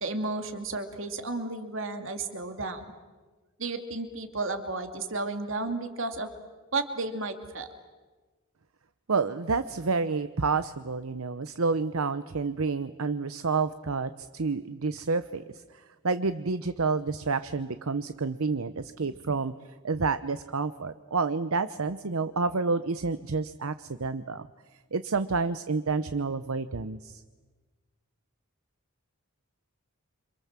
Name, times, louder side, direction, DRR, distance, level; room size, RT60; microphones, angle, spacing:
voice 1, 0.0-2.8 3.6-6.3 6.7-7.7, right 3 dB, 65° right, 6 dB, 2.5 m, -33 dB
voice 2, 9.1-15.4 15.7-19.5 19.8-24.5 24.9-27.2, right 4 dB, 80° right, 12 dB, 0.8 m, -29 dB
28.5 x 26.5 x 7.5 m, 1.3 s
head